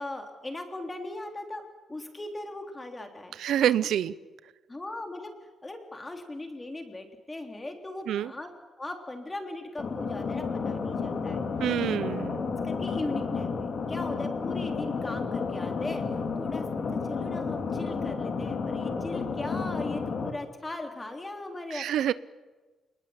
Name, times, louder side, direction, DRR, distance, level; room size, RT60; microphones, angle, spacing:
voice 1, 0.0-1.6 1.9-3.3 4.7-5.3 5.6-8.5 8.8-11.4 12.6-16.0 16.4-16.6 17.1-21.8, left 2 dB, 15° left, 5 dB, 3.5 m, -38 dB
voice 2, 3.3-4.1 8.1-8.3 11.6-12.4 21.7-22.1, right 10 dB, 75° right, 16 dB, 0.8 m, -26 dB
sound 1, 9.8-20.3, left 5 dB, 45° left, 3.3 m, -31 dB
28.0 x 20.0 x 8.9 m, 1.2 s
cardioid pair, 165°, 0 cm